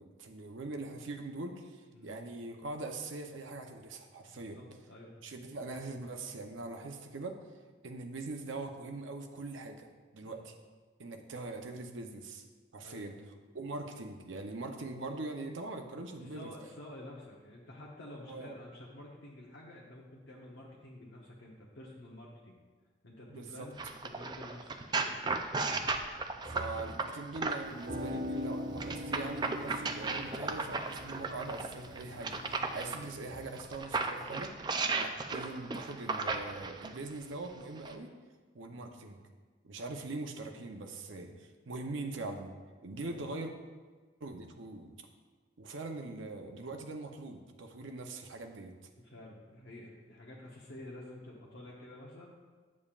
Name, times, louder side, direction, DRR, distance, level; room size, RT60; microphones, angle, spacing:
voice 1, 0.0-4.6 5.2-7.4 7.8-9.9 10.1-10.5 11.0-12.4 12.7-13.1 13.5-16.5 18.3-18.5 23.3-23.7 26.5-34.5 35.0-38.1 38.5-39.2 39.6-42.5 42.8-43.5 44.2-45.0 45.6-48.7, right 2 dB, 85° right, 4 dB, 0.7 m, -42 dB
voice 2, 4.3-5.1 10.2-10.4 12.8-13.1 16.2-22.6 23.0-25.2 32.8-33.0 34.8-35.1 38.7-38.9 43.0-43.2 49.0-52.4, left 1 dB, 75° left, -4 dB, 0.9 m, -50 dB
sound 1, 23.8-27.9 28.8-33.0 33.6-37.0 37.8-37.9, right 4 dB, 20° right, 0.3 m, -35 dB
sound 2, 25.8-28.3 28.9-29.0 29.6-29.7, right 2 dB, 25° left, 1.4 m, -49 dB
sound 3, 27.6-33.6, left 1 dB, 50° right, 0.9 m, -42 dB
8.4 x 7.2 x 2.4 m, 1.4 s
head